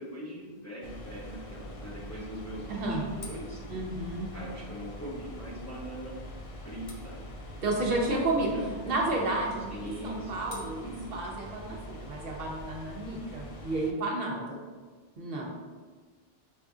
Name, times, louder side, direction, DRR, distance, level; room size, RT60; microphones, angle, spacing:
voice 1, 0.0-3.6 4.3-6.2 6.6-7.3 7.5-8.9 9.7-11.2, equal, 20° left, -7 dB, 0.7 m, -42 dB
sound 1, 0.8-13.9, left 1 dB, 45° left, 0.5 m, -44 dB
voice 2, 2.7-3.0 3.7-4.3 7.6-8.5 8.8-14.6 15.2-15.4, right 2 dB, 70° right, -2 dB, 0.9 m, -31 dB
5.4 x 2.7 x 2.4 m, 1.4 s
omnidirectional pair, 1.0 m